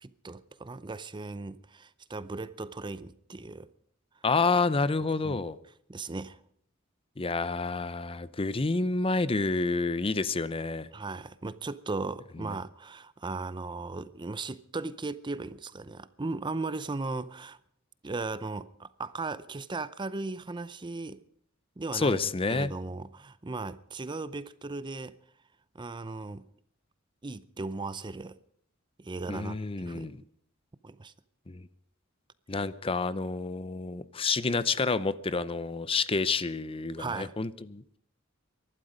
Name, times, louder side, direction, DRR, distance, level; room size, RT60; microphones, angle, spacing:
voice 1, 0.0-3.7 5.2-5.5 5.9-6.4 10.9-17.6 18.0-21.2 21.8-22.2 22.5-25.1 25.7-26.5 27.2-28.4 29.0-30.1 30.8-31.1 37.0-37.3, right 3 dB, 25° right, 0.6 m, -37 dB
voice 2, 4.2-5.6 7.2-10.9 12.4-12.5 21.9-22.7 29.3-30.2 31.5-31.6 32.5-38.0, left 3 dB, 25° left, 0.7 m, -29 dB
23.0 x 12.0 x 5.1 m
head